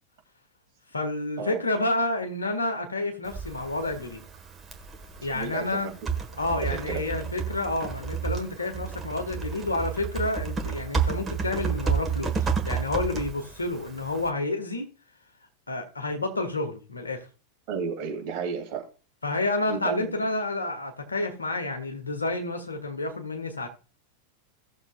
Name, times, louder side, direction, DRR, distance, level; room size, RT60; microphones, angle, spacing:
voice 1, 0.9-4.2 5.2-5.9 6.4-12.4 12.6-14.9 15.7-17.3 19.2-23.7, left 2 dB, 75° left, 1.6 m, -29 dB
Typing, 3.2-14.3, right 6 dB, 20° right, 1.5 m, -31 dB
voice 2, 5.3-5.9 6.6-7.0 17.7-18.8 19.7-20.1, right 6 dB, 45° right, 2.8 m, -32 dB
17.0 x 7.0 x 2.4 m
figure-of-eight pair, 90°, 0 cm